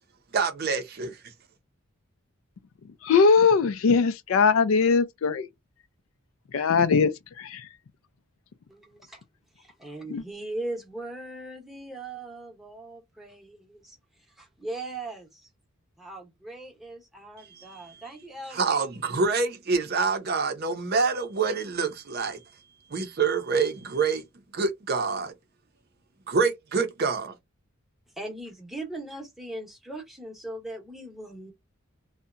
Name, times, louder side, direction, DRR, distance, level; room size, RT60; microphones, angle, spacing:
voice 1, 0.3-1.2 18.5-22.4 22.9-24.2 24.5-25.3 26.3-27.3, right 4 dB, 45° right, 0.5 m, -26 dB
voice 2, 3.0-5.5 6.5-7.7 10.1-10.2, left 5 dB, 70° left, 0.3 m, -21 dB
voice 3, 8.7-9.2 9.6-15.5 16.0-18.7 28.2-31.5, right 2 dB, ahead, 0.7 m, -39 dB
2.7 x 2.1 x 2.4 m
head